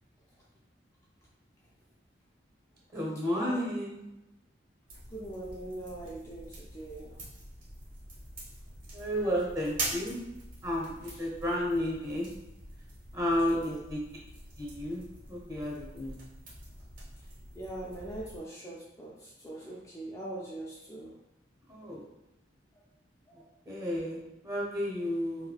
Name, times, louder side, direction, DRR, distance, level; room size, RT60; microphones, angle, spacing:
voice 1, 2.9-4.1 8.9-10.2 10.6-12.3 13.1-14.0 14.6-15.0 15.3-16.3 21.7-22.1 23.7-25.5, equal, 20° right, -3 dB, 0.8 m, -32 dB
sound 1, 4.9-18.4, right 2 dB, 45° right, 1.1 m, -44 dB
voice 2, 5.1-7.2 11.1-11.3 13.5-13.8 17.6-21.1 23.3-23.4, right 1 dB, 15° left, -5 dB, 0.3 m, -42 dB
3.4 x 2.6 x 2.3 m, 0.95 s
head